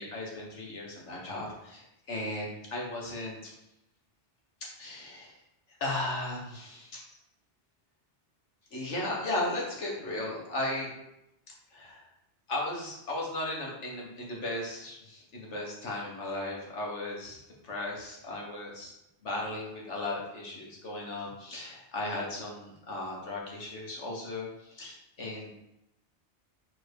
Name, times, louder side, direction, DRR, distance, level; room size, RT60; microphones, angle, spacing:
voice 1, 0.0-3.5 4.8-5.3 5.8-7.0 8.7-10.9 11.7-12.0 12.5-18.9 19.2-25.5, left 2 dB, 85° left, -2 dB, 1.8 m, -36 dB
4.5 x 4.5 x 4.7 m, 0.85 s
omnidirectional pair, 1.2 m